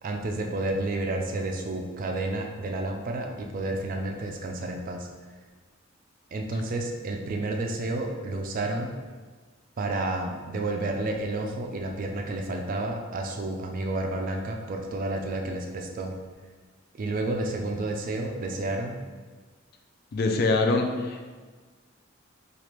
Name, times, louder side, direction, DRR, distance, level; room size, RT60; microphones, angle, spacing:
voice 1, 0.0-5.1 6.3-8.9 9.8-16.1 17.0-19.0, right 2 dB, 45° right, 3 dB, 0.3 m, -30 dB
voice 2, 20.1-21.2, left 3 dB, 50° left, 3 dB, 0.3 m, -24 dB
3.2 x 2.4 x 3.0 m, 1.4 s
head